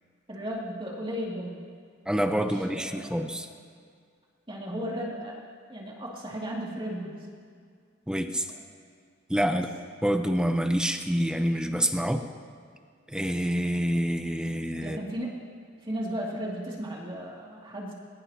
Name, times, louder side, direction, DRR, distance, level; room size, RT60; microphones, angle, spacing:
voice 1, 0.3-1.6 2.1-3.2 4.5-5.4 5.7-7.3 8.4-8.6 9.4-9.6 14.8-15.5 15.8-17.9, equal, 25° right, -4 dB, 2.6 m, -35 dB
voice 2, 2.1-3.5 8.1-8.5 9.3-9.7 10.0-12.2 13.1-15.0, equal, 5° right, 6 dB, 0.8 m, -27 dB
21.5 x 21.0 x 2.9 m, 2.1 s
head